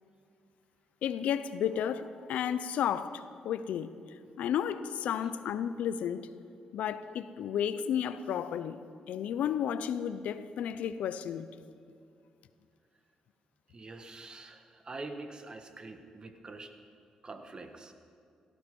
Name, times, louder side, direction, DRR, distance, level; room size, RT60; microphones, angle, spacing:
voice 1, 1.0-3.9 4.4-6.3 6.7-8.8 9.1-11.5, left 9 dB, 80° left, 0.6 m, -32 dB
voice 2, 13.7-16.7 17.2-17.9, right 3 dB, 35° right, 1.5 m, -45 dB
17.0 x 13.5 x 5.4 m
cardioid pair, 70°, 2 cm